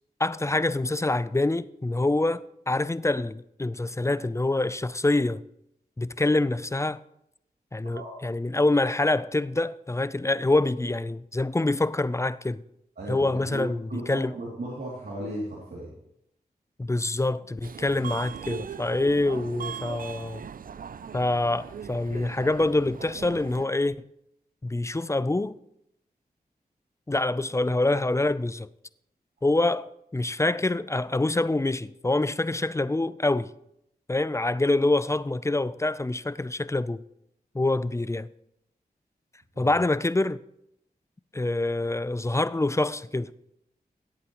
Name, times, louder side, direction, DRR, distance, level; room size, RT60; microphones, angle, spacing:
voice 1, 0.2-5.4 6.0-7.0 7.7-12.6 13.1-14.4 16.8-20.4 21.1-24.0 24.6-25.6 27.1-28.7 29.4-33.5 34.1-37.0 37.5-38.3 39.6-40.4 41.3-43.3, left 2 dB, 15° left, 0.5 m, -26 dB
voice 2, 13.0-15.9 39.5-39.7, right 1 dB, 75° right, 2.9 m, -36 dB
Subway metro underground, 17.6-23.7, right 7 dB, 60° right, 0.4 m, -39 dB
18.0 x 8.5 x 3.1 m
cardioid pair, 45°, 17 cm